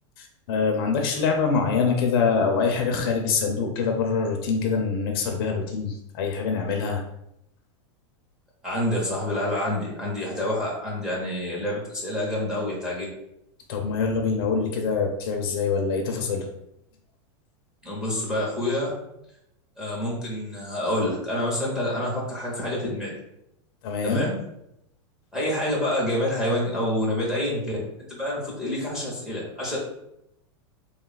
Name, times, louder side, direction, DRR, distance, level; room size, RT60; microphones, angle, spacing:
voice 1, 0.5-7.0 13.7-16.5 23.8-24.3, left 5 dB, 50° left, 3 dB, 0.7 m, -24 dB
voice 2, 8.6-13.1 17.8-18.9 19.8-23.1 24.0-24.4 25.3-27.8 28.1-29.8, left 1 dB, 5° right, -5 dB, 0.9 m, -27 dB
3.6 x 2.4 x 4.0 m, 0.80 s
supercardioid pair, 170°, 15 cm